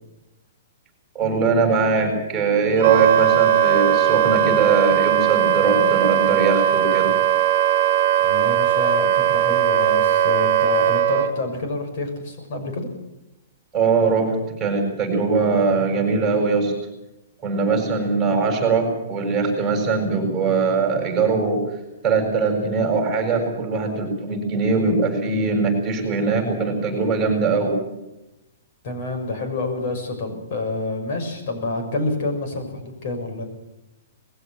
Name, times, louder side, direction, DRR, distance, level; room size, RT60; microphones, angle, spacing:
voice 1, 1.1-7.1 13.7-16.7 17.4-21.6 22.0-27.7, right 4 dB, 10° right, 1 dB, 7.6 m, -21 dB
Wind instrument woodwind instrument, 2.8-11.3, right 10 dB, 45° right, 1.8 m, -18 dB
voice 2, 8.2-12.9 28.8-33.4, left 2 dB, 45° left, 5 dB, 6.5 m, -28 dB
21.0 x 16.5 x 9.2 m, 0.93 s
hypercardioid pair, 165°, 0 cm